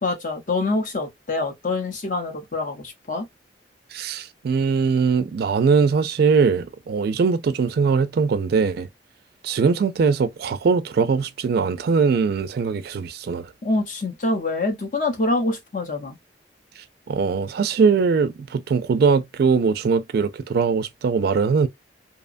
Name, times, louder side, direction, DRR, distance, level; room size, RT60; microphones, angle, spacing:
voice 1, 0.0-3.3 13.6-16.2, left 2 dB, 45° left, 0.8 m, -25 dB
voice 2, 3.9-8.9 9.4-13.5 17.1-21.7, right 5 dB, 60° right, 0.3 m, -21 dB
2.8 x 2.1 x 2.4 m
head